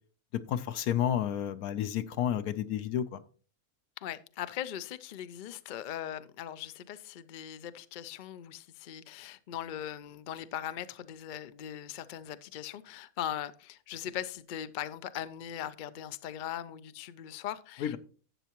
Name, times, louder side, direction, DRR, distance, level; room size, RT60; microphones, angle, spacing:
voice 1, 0.5-3.2 17.8-18.0, left 10 dB, 85° left, 1.2 m, -31 dB
voice 2, 4.0-18.0, left 10 dB, 65° left, 0.4 m, -40 dB
12.5 x 8.1 x 3.0 m
omnidirectional pair, 1.5 m